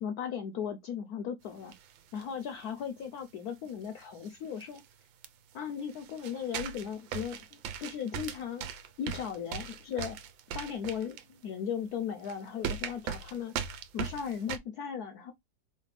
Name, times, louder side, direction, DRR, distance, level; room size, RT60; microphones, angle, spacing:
voice 1, 0.0-1.7 2.1-4.8 5.5-8.7 9.0-10.2 10.5-13.6 13.9-15.3, left 7 dB, 70° left, 1.0 m, -37 dB
sound 1, 1.7-2.2 2.6-2.7 3.9-4.0 4.2-4.3 4.6-4.8 5.2-5.3 5.8-11.2 11.8-11.9 12.2-12.3 12.6-14.6, right 8 dB, 85° right, 1.4 m, -39 dB
4.3 x 3.3 x 3.1 m
omnidirectional pair, 2.1 m